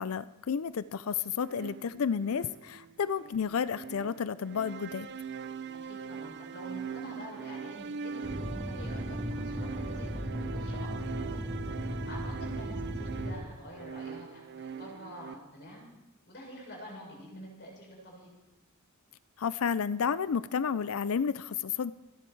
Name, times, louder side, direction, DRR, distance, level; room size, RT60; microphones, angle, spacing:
voice 1, 0.0-5.1 19.4-21.9, left 6 dB, 65° left, 16 dB, 0.5 m, -31 dB
sound 1, 1.4-15.3, right 6 dB, 50° right, 0.5 m, -41 dB
voice 2, 5.8-11.5 11.8-15.8 16.3-18.3, equal, 50° left, -1 dB, 6.9 m, -47 dB
sound 2, 8.2-13.3, equal, 20° right, 3.4 m, -37 dB
27.5 x 10.5 x 4.6 m, 0.99 s
head